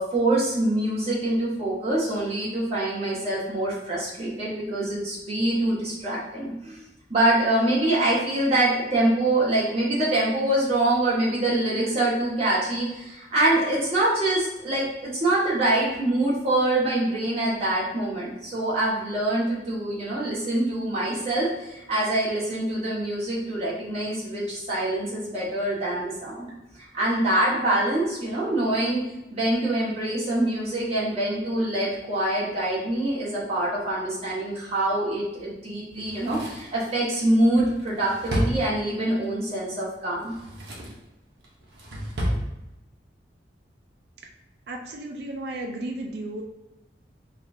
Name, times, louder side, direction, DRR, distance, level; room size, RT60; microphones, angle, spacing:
voice 1, 0.0-6.8 7.1-26.5 26.8-29.0 29.3-40.3, right 1 dB, 35° right, -7 dB, 1.4 m, -25 dB
Drawer open or close, 35.9-39.2 40.1-41.0 41.4-42.4 42.7-42.8, equal, 75° right, 0.9 m, -31 dB
voice 2, 44.7-46.4, right 1 dB, 60° right, 2 dB, 0.4 m, -34 dB
5.4 x 2.4 x 2.7 m, 0.96 s
head